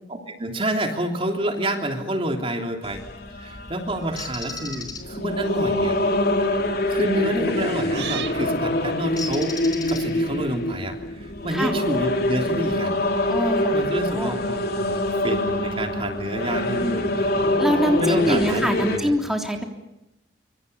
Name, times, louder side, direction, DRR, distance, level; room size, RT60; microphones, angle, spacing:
voice 1, 0.1-3.0 3.3-6.0 6.9-9.5 9.9-12.9 13.7-17.5 18.0-19.1, right 1 dB, 30° right, 4 dB, 3.3 m, -28 dB
sound 1, 2.8-19.0, left 1 dB, 60° left, 3.2 m, -25 dB
sound 2, 3.9-4.9 5.8-6.0 7.9-8.4, right 9 dB, 65° right, 1.8 m, -36 dB
Bird, 4.2-5.0 7.6-7.9 9.2-10.4, left 5 dB, 20° left, 4.4 m, -35 dB
voice 2, 13.3-14.4 17.6-19.6, equal, ahead, 2 dB, 3.4 m, -24 dB
26.5 x 26.0 x 7.0 m, 0.91 s
head